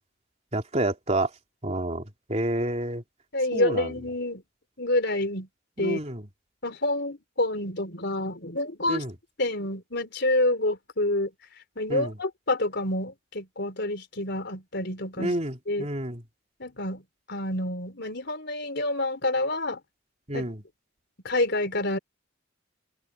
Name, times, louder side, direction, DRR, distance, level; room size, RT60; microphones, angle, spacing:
voice 1, 0.5-1.3 1.6-2.0 2.3-3.0 3.5-3.9 5.8-6.2 8.9-9.1 11.9-12.1 15.2-16.2 20.3-20.6, right 1 dB, 30° right, 3.3 m, -29 dB
voice 2, 3.3-4.4 4.8-5.5 5.8-6.0 6.6-9.0 9.4-11.3 11.8-15.3 15.7-15.9 16.6-19.8 20.3-20.5 21.2-22.0, left 1 dB, 55° left, 4.4 m, -28 dB
head